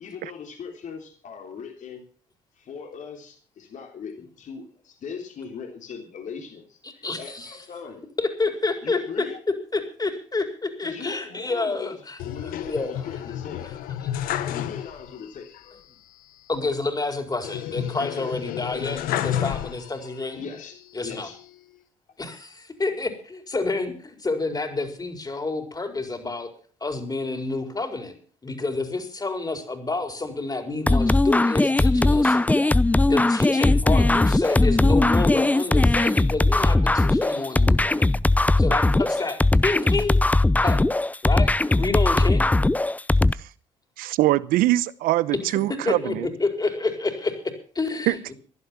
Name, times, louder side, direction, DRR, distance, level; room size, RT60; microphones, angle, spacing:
voice 1, 0.0-2.0 2.6-8.1 8.8-9.4 10.8-12.0 12.2-13.7 14.4-15.8 20.4-21.4, left 6 dB, 55° left, 3.4 m, -39 dB
voice 2, 6.8-7.6 8.2-9.0 9.7-13.2 13.6-13.7 16.5-20.5 20.9-21.3 22.2-26.5 26.8-28.2 28.4-32.7 33.1-38.1 38.6-40.2 40.6-40.8 41.2-42.4 45.5-45.6 45.8-48.3, left 3 dB, 25° left, 4.6 m, -29 dB
sound 1, 12.2-15.2 15.5-15.6 17.4-20.2 20.7-21.5, left 11 dB, 70° left, 1.1 m, -31 dB
sound 2, 30.9-43.3, left 2 dB, 10° left, 0.6 m, -19 dB
voice 3, 44.0-46.3 48.1-48.2, right 16 dB, 70° right, 0.8 m, -22 dB
16.5 x 11.5 x 5.8 m
hypercardioid pair, 60°, 15 cm